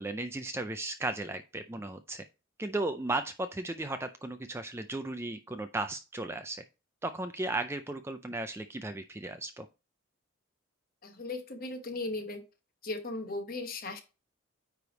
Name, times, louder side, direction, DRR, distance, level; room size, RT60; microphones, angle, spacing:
voice 1, 0.0-2.3 2.6-6.6 7.0-9.7, right 2 dB, 10° right, 9 dB, 0.3 m, -35 dB
voice 2, 11.0-12.4 12.8-14.0, left 2 dB, 45° left, 5 dB, 1.1 m, -37 dB
9.3 x 3.4 x 3.9 m, 0.30 s
head